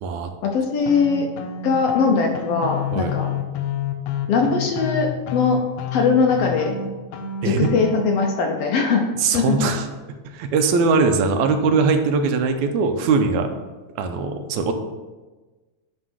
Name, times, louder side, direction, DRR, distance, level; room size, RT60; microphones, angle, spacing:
voice 1, 0.4-1.3 1.6-3.3 4.3-5.6 5.9-6.7 7.4-9.0 9.3-9.6, left 5 dB, 70° left, 1 dB, 1.6 m, -20 dB
sound 1, 0.9-8.3, left 6 dB, 90° left, 2.1 m, -29 dB
voice 2, 9.2-9.9 10.2-13.5 14.0-14.7, right 4 dB, 85° right, 6 dB, 2.0 m, -20 dB
9.5 x 3.3 x 6.2 m, 1.2 s
omnidirectional pair, 3.4 m